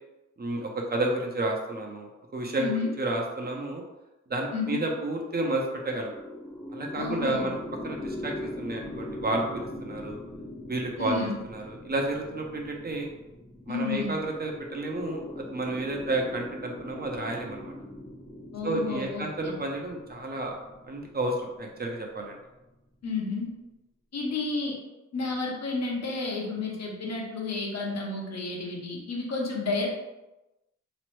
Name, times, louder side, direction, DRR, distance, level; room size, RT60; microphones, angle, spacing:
voice 1, 0.4-2.7 3.0-3.8 4.3-6.1 6.7-7.5 7.8-10.2 10.7-13.1 13.7-17.7 18.6-20.6 20.9-22.4, right 2 dB, 35° right, 1 dB, 0.5 m, -31 dB
voice 2, 2.6-2.9 4.5-4.8 6.9-7.5 11.0-11.4 13.7-14.1 18.5-19.6 23.0-23.5 24.1-24.8 25.1-29.9, left 3 dB, 60° left, -1 dB, 0.8 m, -31 dB
sound 1, 5.4-22.6, left 1 dB, 15° left, 0.6 m, -41 dB
3.0 x 2.0 x 3.0 m, 1.0 s
cardioid pair, 70°, 30 cm